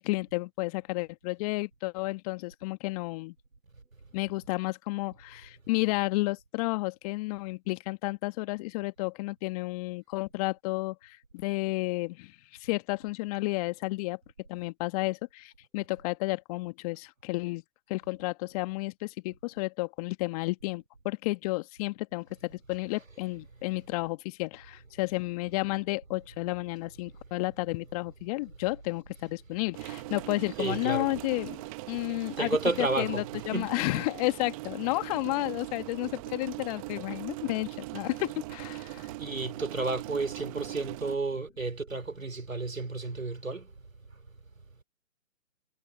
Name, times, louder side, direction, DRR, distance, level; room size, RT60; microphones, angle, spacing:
voice 1, 0.0-3.3 4.1-14.2 14.5-17.6 17.9-39.1, left 23 dB, 30° left, 1.7 m, -32 dB
sound 1, 29.7-41.2, right 21 dB, 25° right, 1.1 m, -40 dB
voice 2, 30.6-31.1 32.4-33.7 39.2-43.7 44.1-44.2, right 3 dB, 85° right, 3.6 m, -32 dB
figure-of-eight pair, 130°, 39 cm